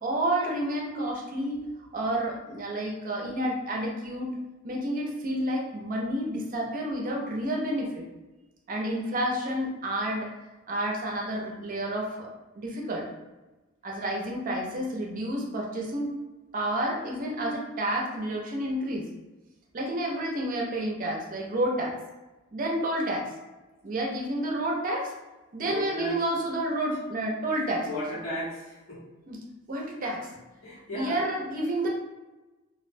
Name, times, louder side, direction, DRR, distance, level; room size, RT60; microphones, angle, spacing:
voice 1, 0.0-1.7 1.9-4.3 4.6-8.0 8.7-10.3 10.7-12.3 12.5-13.1 13.8-16.1 16.5-19.1 19.7-22.0 22.5-23.3 23.8-25.1 25.5-28.0 29.3-29.4 29.7-30.3 30.9-31.9, right 1 dB, 40° right, -1 dB, 0.5 m, -30 dB
voice 2, 25.6-26.2 27.8-29.0 30.6-31.2, left 1 dB, 90° left, -8 dB, 1.2 m, -35 dB
2.4 x 2.1 x 2.6 m, 1.1 s
head